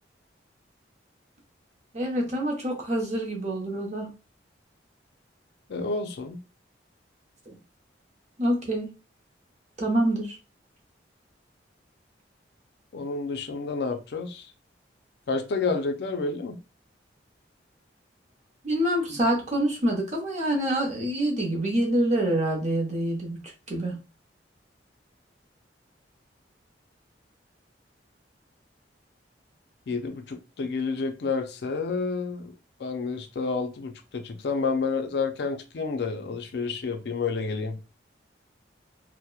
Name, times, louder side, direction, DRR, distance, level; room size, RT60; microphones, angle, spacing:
voice 1, 1.9-4.1 7.5-7.6 8.4-8.9 9.8-10.3 18.6-23.4 23.7-24.0, right 1 dB, 40° right, 0.8 m, -26 dB
voice 2, 5.7-6.4 12.9-14.5 15.3-16.6 29.9-32.5 32.8-37.8, left 4 dB, 60° left, 0.4 m, -29 dB
2.8 x 2.0 x 2.2 m
head